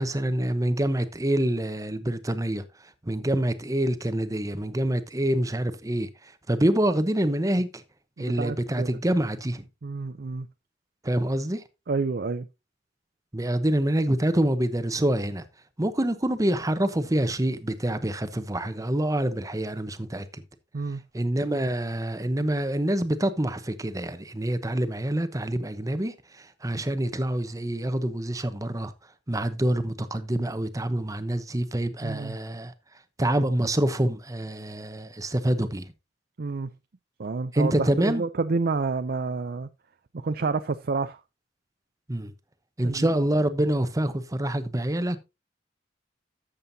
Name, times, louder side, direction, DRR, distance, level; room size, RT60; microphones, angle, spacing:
voice 1, 0.0-2.6 3.0-6.1 6.5-7.8 8.2-9.6 11.0-11.6 13.3-15.4 15.8-20.4 21.1-26.1 26.6-28.9 29.3-32.7 33.2-35.9 37.5-38.2 42.1-42.3 42.8-45.2, right 1 dB, 20° right, 0.9 m, -26 dB
voice 2, 8.2-9.0 9.8-10.5 11.9-12.5 20.7-21.0 32.0-32.4 36.4-36.7 37.2-39.7 40.1-41.2 42.8-43.1, right 4 dB, 55° right, 0.5 m, -29 dB
12.5 x 7.7 x 2.7 m
head